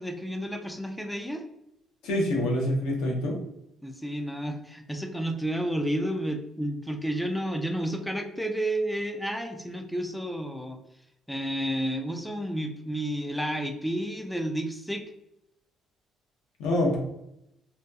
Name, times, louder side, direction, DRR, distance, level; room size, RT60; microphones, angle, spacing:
voice 1, 0.0-1.4 3.8-10.8 11.3-15.1, right 1 dB, ahead, 4 dB, 0.3 m, -31 dB
voice 2, 2.0-3.4 16.6-17.0, left 1 dB, 90° left, 0 dB, 0.7 m, -26 dB
2.7 x 2.2 x 2.3 m, 0.80 s
cardioid pair, 105°, 0 cm